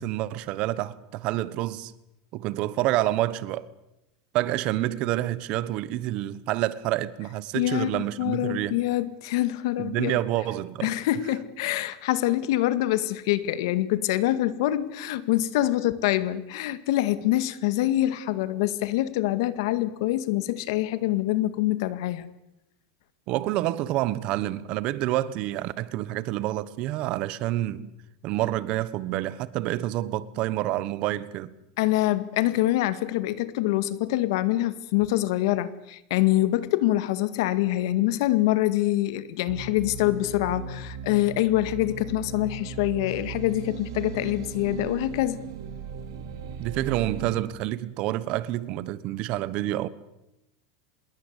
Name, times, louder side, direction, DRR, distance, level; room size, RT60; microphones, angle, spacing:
voice 1, 0.0-1.9 2.3-3.7 4.3-8.8 9.8-10.9 23.3-27.9 28.2-31.5 46.6-49.9, right 15 dB, 40° right, 1.2 m, -28 dB
voice 2, 7.5-10.2 10.8-22.3 31.8-45.4, left 15 dB, 65° left, 1.9 m, -25 dB
sound 1, 39.5-47.4, right 5 dB, 80° right, 4.1 m, -37 dB
26.0 x 21.5 x 8.3 m
supercardioid pair, 160°, 2 cm